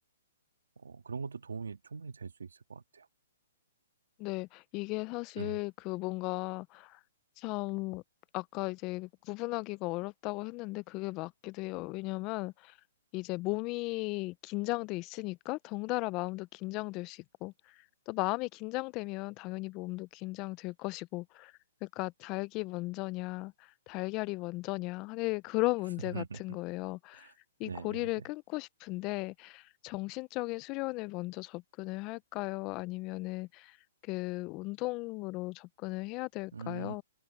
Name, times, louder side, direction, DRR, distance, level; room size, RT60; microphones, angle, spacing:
voice 1, 0.8-3.1 5.4-5.6 26.1-26.4 27.2-27.3 27.6-28.2 36.5-37.0, right 5 dB, 85° right, 1.7 m, -42 dB
voice 2, 4.2-7.0 7.4-8.0 8.3-12.7 13.1-17.5 18.1-21.5 21.8-23.5 23.9-27.3 27.6-33.8 34.0-37.0, left 23 dB, 30° left, 0.5 m, -36 dB
open air
hypercardioid pair, 140°, 0 cm